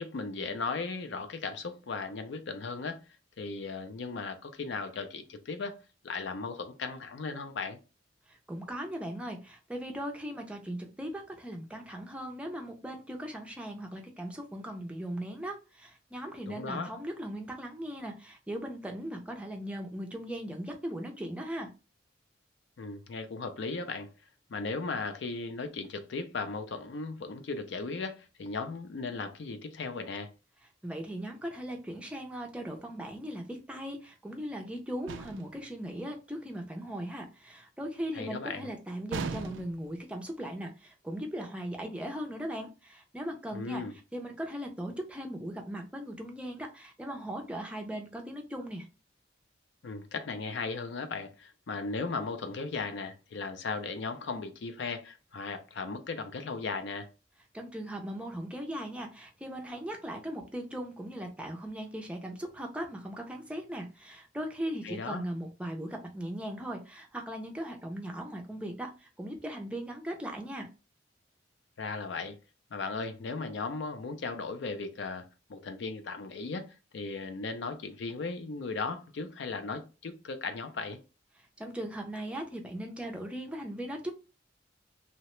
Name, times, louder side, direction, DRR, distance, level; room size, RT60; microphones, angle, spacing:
voice 1, 0.0-3.0 3.4-5.8 6.0-7.8 16.4-16.9 22.8-24.1 24.5-30.3 38.1-38.7 43.5-44.0 49.8-57.1 64.8-65.2 71.8-72.4 72.7-75.2 75.5-76.7 76.9-81.0, left 4 dB, 70° left, 0.4 m, -36 dB
voice 2, 8.3-21.7 30.8-43.8 44.1-48.9 57.5-70.7 81.6-84.1, equal, 5° right, 0.4 m, -38 dB
sound 1, 35.1-35.6 39.1-39.9, right 4 dB, 80° right, 0.3 m, -37 dB
2.8 x 2.1 x 3.0 m
head